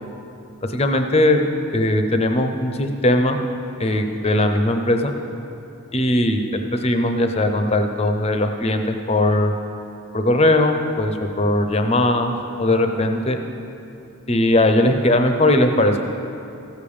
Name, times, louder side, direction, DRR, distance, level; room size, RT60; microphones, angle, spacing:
voice 1, 0.7-1.4 1.7-3.4 3.8-5.1 5.9-9.5 10.1-13.4 14.3-16.0, left 1 dB, 25° left, 6 dB, 0.6 m, -19 dB
15.0 x 5.1 x 7.1 m, 2.8 s
head